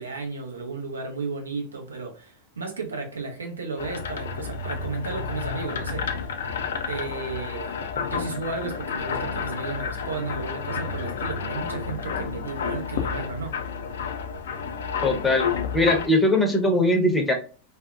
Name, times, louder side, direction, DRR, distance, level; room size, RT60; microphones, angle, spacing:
voice 1, 0.0-6.2 6.9-13.6, right 4 dB, 70° right, 0.5 m, -34 dB
sound 1, 3.8-16.1, left 6 dB, 60° left, 0.3 m, -30 dB
voice 2, 15.0-15.5 15.7-17.3, left 1 dB, 10° left, 0.6 m, -20 dB
2.6 x 2.0 x 2.2 m
figure-of-eight pair, 90°, 0 cm